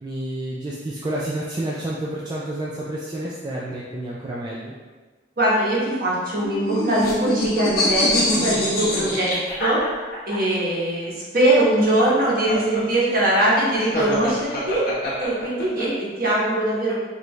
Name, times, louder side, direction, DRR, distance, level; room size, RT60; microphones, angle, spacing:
voice 1, 0.0-4.7, right 1 dB, 25° right, -5 dB, 0.3 m, -29 dB
voice 2, 5.4-9.8 10.3-14.9 15.2-16.9, right 1 dB, 50° right, -6 dB, 1.1 m, -21 dB
sound 1, 6.3-10.4 11.6-15.8, left 1 dB, 50° left, 1.0 m, -25 dB
4.6 x 2.6 x 3.2 m, 1.4 s
head